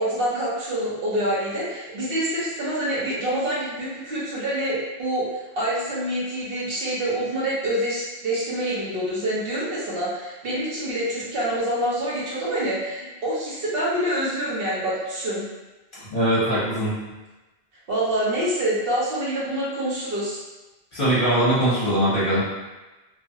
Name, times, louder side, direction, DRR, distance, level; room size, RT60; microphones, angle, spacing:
voice 1, 0.0-15.4 17.9-20.4, right 1 dB, 60° right, -7 dB, 1.1 m, -26 dB
voice 2, 16.1-16.9 20.9-22.4, right 1 dB, 55° left, -10 dB, 1.0 m, -21 dB
3.0 x 2.2 x 2.7 m, 1.1 s
omnidirectional pair, 1.1 m